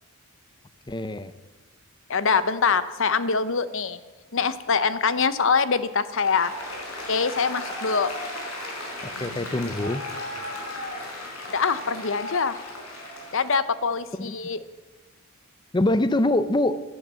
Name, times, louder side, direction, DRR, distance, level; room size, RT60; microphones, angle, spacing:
voice 1, 0.9-1.3 9.0-10.0 14.2-14.4 15.7-16.8, left 1 dB, 20° left, 13 dB, 0.6 m, -24 dB
voice 2, 2.1-4.0 4.3-6.5 7.1-8.1 11.5-12.6 13.3-14.6, left 5 dB, 60° left, 14 dB, 0.8 m, -24 dB
Applause, 6.1-13.6, left 1 dB, 75° left, 4.9 m, -35 dB
15.5 x 11.0 x 7.5 m, 1.3 s
head